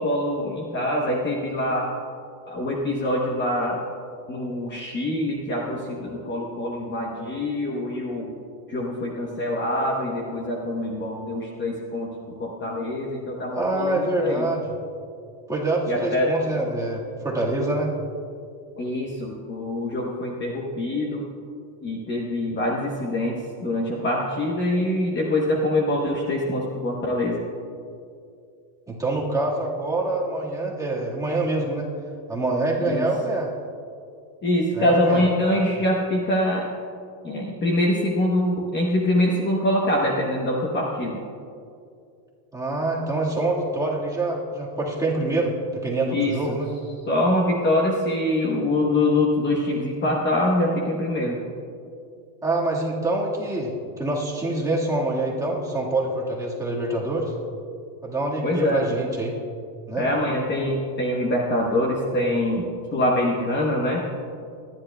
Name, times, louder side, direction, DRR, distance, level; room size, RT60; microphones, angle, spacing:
voice 1, 0.0-1.9 2.5-3.8 4.3-8.3 8.7-12.1 12.4-14.5 15.9-16.3 18.8-21.2 21.8-23.4 23.6-27.4 32.8-33.0 34.4-36.7 37.2-41.2 46.1-46.3 47.1-51.4 58.4-58.8 60.0-64.0, left 1 dB, 20° left, -1 dB, 0.9 m, -24 dB
voice 2, 13.5-14.7 15.5-17.9 28.9-31.9 32.3-33.5 34.7-35.3 42.5-46.7 52.4-57.3 58.0-59.4 59.9-60.1, right 2 dB, 5° right, -4 dB, 1.6 m, -25 dB
24.5 x 10.5 x 2.2 m, 2.4 s
cardioid pair, 155°, 50 cm